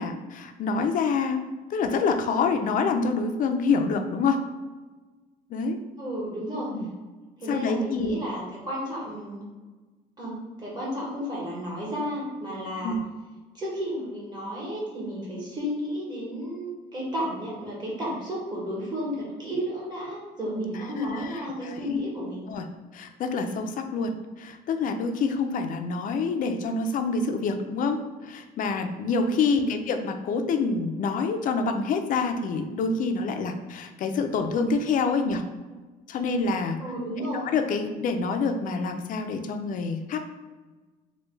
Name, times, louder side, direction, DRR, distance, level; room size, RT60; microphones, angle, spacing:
voice 1, 0.0-1.4 1.7-4.4 5.5-5.8 6.7-6.9 7.5-8.2 12.8-13.0 21.1-21.3 21.6-22.0 22.5-22.6 22.9-24.1 24.4-35.4 36.1-36.8 37.2-40.2, left 4 dB, 55° left, 6 dB, 0.4 m, -27 dB
voice 2, 6.0-6.7 7.4-9.4 10.2-10.3 10.6-13.0 13.5-22.5 29.5-29.8 36.8-37.4, equal, 25° right, -5 dB, 1.5 m, -32 dB
3.1 x 2.2 x 3.3 m, 1.3 s
cardioid pair, 110°, 17 cm